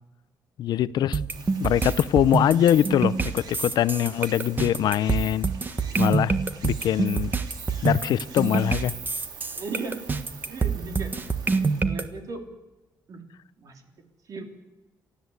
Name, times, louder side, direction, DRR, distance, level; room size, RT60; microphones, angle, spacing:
voice 1, 0.6-1.2 1.6-5.5 6.0-7.3 7.8-9.0, left 11 dB, 75° left, 0.6 m, -23 dB
sound 1, 1.1-12.0, right 4 dB, 25° right, 1.3 m, -26 dB
Stream, 1.3-11.8, right 5 dB, 75° right, 3.7 m, -43 dB
voice 2, 9.6-10.0 10.5-11.1 11.5-12.4 13.1-13.2 13.6-13.8 14.3-14.4, right 4 dB, 50° right, 3.5 m, -36 dB
30.0 x 13.0 x 8.1 m
cardioid pair, 145°, 7 cm